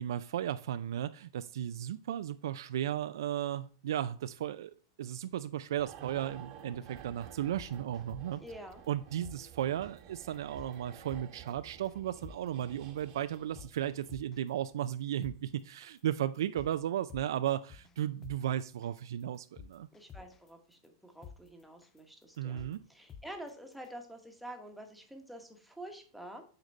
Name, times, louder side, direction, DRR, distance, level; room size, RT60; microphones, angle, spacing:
voice 1, 0.0-8.4 8.9-19.9 22.4-22.8, right 11 dB, 80° right, 12 dB, 0.3 m, -35 dB
sound 1, 5.8-14.3 14.6-14.8, right 9 dB, 40° right, 1.1 m, -52 dB
sound 2, 6.8-7.0 7.4-8.5 8.8-8.9 9.2-9.4 9.8-10.0 10.3-10.7 11.1-11.5 11.8-11.9 12.2-12.4 12.8-13.0 13.3-14.5 14.8-14.9 15.2-15.4 15.8-16.0 16.3-16.7 17.1-17.9 18.2-18.4 18.8-19.0 19.3-20.5 20.8-20.9 21.2-21.4 21.8-22.0 22.3-22.7 23.1-23.5 23.8-23.9, left 7 dB, 15° left, 0.4 m, -49 dB
voice 2, 8.4-8.8 19.9-26.4, right 1 dB, ahead, 4 dB, 1.1 m, -48 dB
7.9 x 3.9 x 5.3 m, 0.40 s
supercardioid pair, 150°, 2 cm